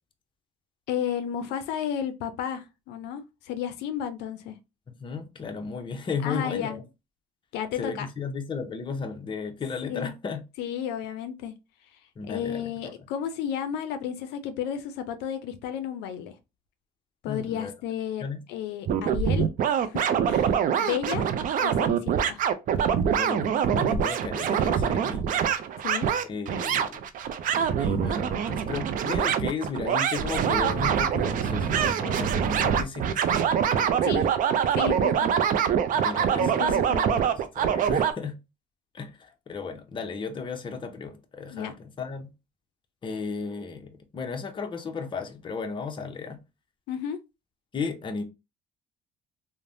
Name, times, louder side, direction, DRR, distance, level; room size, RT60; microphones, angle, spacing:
voice 1, 0.9-4.6 6.2-6.8 7.5-8.1 9.8-10.1 10.6-11.5 12.3-16.3 17.2-18.2 18.5-19.5 19.8-21.3 21.6-22.4 25.8-26.1 34.0-34.3 34.8-35.3 36.4-37.2 41.5-41.7 46.9-47.2, left 9 dB, 85° left, 0.4 m, -32 dB
voice 2, 5.0-6.8 7.7-10.4 12.2-12.9 17.3-17.7 18.2-18.4 23.2-25.5 26.2-27.0 27.8-33.6 35.9-38.4 38.9-42.3 43.0-46.4 47.7-48.2, left 5 dB, 30° left, 0.6 m, -35 dB
sound 1, 18.9-38.1, right 8 dB, 55° right, 0.4 m, -24 dB
3.2 x 2.0 x 2.5 m
cardioid pair, 110°, 17 cm